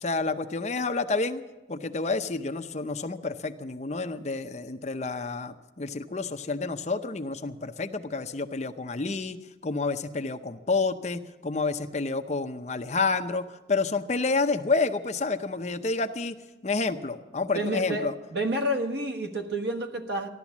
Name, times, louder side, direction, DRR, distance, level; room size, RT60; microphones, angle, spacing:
voice 1, 0.0-1.4 1.7-16.4 16.6-18.1, left 3 dB, 40° left, 8 dB, 0.7 m, -29 dB
voice 2, 17.5-20.3, right 1 dB, 65° right, 5 dB, 1.4 m, -29 dB
14.5 x 12.0 x 7.2 m, 1.1 s
head